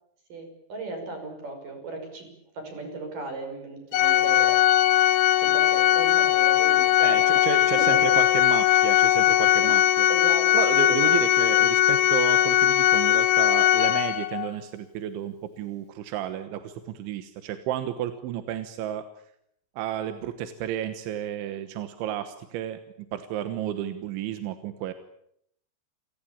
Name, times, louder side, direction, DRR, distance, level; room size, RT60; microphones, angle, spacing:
voice 1, 0.3-2.3 2.5-4.5 5.4-7.5 7.8-8.0 10.1-10.5 10.9-11.2, right 3 dB, 45° right, 6 dB, 7.5 m, -36 dB
Organ, 3.9-14.5, left 13 dB, 85° left, 3.6 m, -20 dB
voice 2, 7.0-10.1 10.5-19.1 19.8-22.8 23.1-24.9, right 11 dB, 90° right, 10 dB, 3.7 m, -32 dB
28.5 x 19.0 x 8.8 m, 0.72 s
omnidirectional pair, 5.3 m